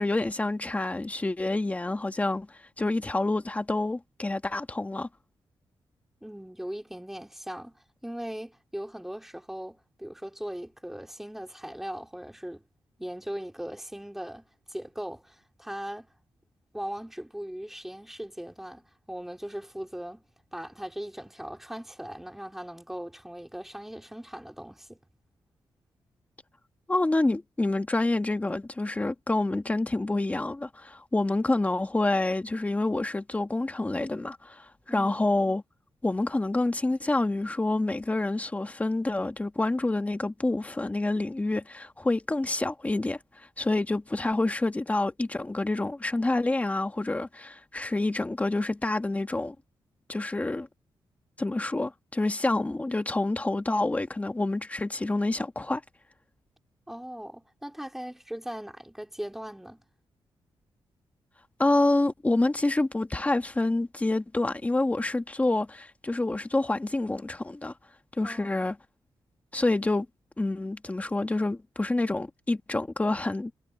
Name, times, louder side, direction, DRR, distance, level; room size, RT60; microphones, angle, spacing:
voice 1, 0.0-2.5 2.8-5.1 26.9-35.6 36.0-43.2 43.6-49.5 50.1-50.7 51.4-55.8 61.6-67.7 68.2-68.7 69.5-70.1 70.4-73.5, left 2 dB, 15° left, 1.7 m, -27 dB
voice 2, 6.2-12.6 13.0-16.1 16.7-20.2 20.5-25.0 34.9-35.1 56.9-59.8 68.2-68.5, equal, 5° right, 3.2 m, -39 dB
wide cardioid pair, 135°, 9 cm